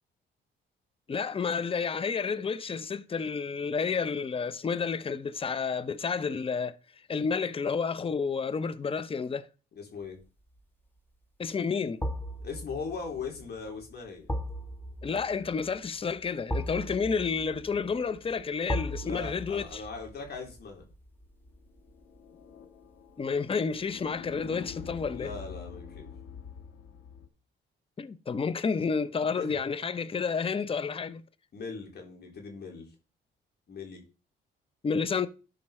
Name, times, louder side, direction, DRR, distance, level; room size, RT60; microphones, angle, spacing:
voice 1, 1.1-6.7 7.1-9.5 11.4-12.0 15.0-19.8 23.2-25.3 28.0-31.2 34.8-35.3, left 5 dB, 30° left, 0.7 m, -30 dB
voice 2, 9.8-10.2 12.4-14.3 19.0-20.8 25.1-26.1 29.4-29.6 31.5-32.9 33.7-34.0, left 5 dB, 55° left, 3.7 m, -39 dB
sound 1, 10.2-10.6 12.0-23.0 23.3-23.5, equal, 10° left, 1.4 m, -39 dB
sound 2, 21.7-27.3, left 7 dB, 85° left, 1.6 m, -45 dB
11.5 x 5.2 x 4.4 m
cardioid pair, 90°, 20 cm